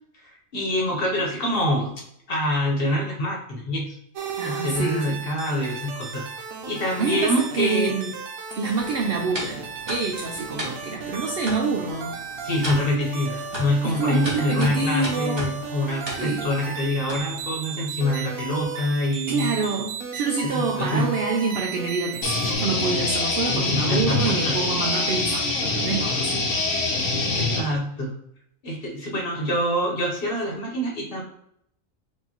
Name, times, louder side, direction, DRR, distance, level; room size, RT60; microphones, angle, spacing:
voice 1, 0.2-1.9 2.3-3.9 4.4-6.3 6.7-7.9 12.4-19.5 20.4-21.1 23.5-24.6 27.3-28.1 28.6-31.2, left 1 dB, 50° left, -2 dB, 1.0 m, -25 dB
sound 1, 4.1-22.6, right 6 dB, 90° right, 1.1 m, -35 dB
voice 2, 4.4-5.2 7.0-8.1 8.5-12.2 13.8-15.5 16.2-16.5 19.3-26.5 26.8-26.9 29.1-29.2, right 4 dB, 65° right, 0 dB, 0.6 m, -27 dB
sound 2, 8.8-17.6, equal, 20° right, 1.0 m, -37 dB
sound 3, 22.2-27.6, left 2 dB, 85° left, 1.2 m, -24 dB
4.6 x 2.6 x 2.9 m, 0.72 s
omnidirectional pair, 1.4 m